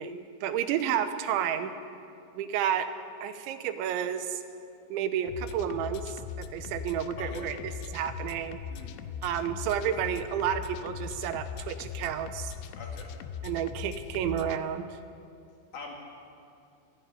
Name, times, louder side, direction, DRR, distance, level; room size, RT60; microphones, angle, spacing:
voice 1, 0.0-1.7 2.3-2.9 3.2-4.4 4.9-7.6 7.9-8.6 9.2-12.5 13.4-15.0, right 9 dB, 85° right, 9 dB, 3.2 m, -31 dB
sound 1, 5.3-14.6, left 7 dB, 80° left, 2.9 m, -40 dB
voice 2, 7.2-7.5 8.7-9.1 12.8-13.1 15.7-15.9, left 3 dB, 50° left, -1 dB, 3.6 m, -43 dB
28.0 x 11.0 x 10.0 m, 2.6 s
omnidirectional pair, 5.4 m